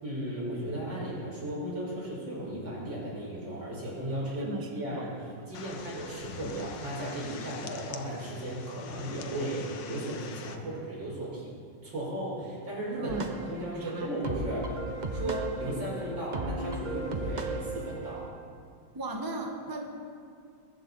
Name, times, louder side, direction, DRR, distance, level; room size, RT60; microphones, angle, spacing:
voice 1, 0.0-5.1 5.5-11.5 11.8-13.2 13.5-14.7 15.1-18.3, right 1 dB, 80° right, -5 dB, 6.2 m, -35 dB
voice 2, 4.3-5.0 13.0-14.4 18.9-19.8, right 2 dB, 15° right, 1 dB, 1.3 m, -37 dB
sound 1, 5.5-10.6, left 6 dB, 75° left, 1.6 m, -45 dB
sound 2, 13.1-18.3, right 2 dB, 30° right, 1.0 m, -35 dB
22.5 x 14.5 x 4.1 m, 2.4 s
omnidirectional pair, 2.0 m